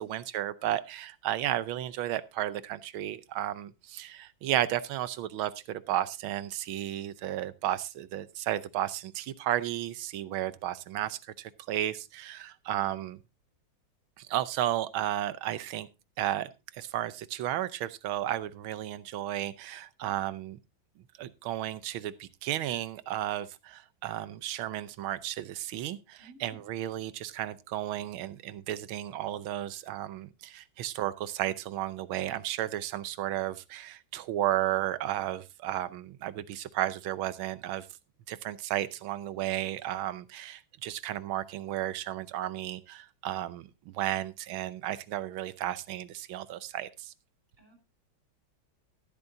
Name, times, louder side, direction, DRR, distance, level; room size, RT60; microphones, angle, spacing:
voice 1, 0.0-13.2 14.2-15.9 16.2-20.6 21.2-37.9 38.3-47.1, right 13 dB, 85° right, 1.6 m, -33 dB
voice 2, 26.2-26.6 47.6-47.8, right 2 dB, 40° right, 4.4 m, -54 dB
13.5 x 12.0 x 2.6 m
omnidirectional pair, 2.2 m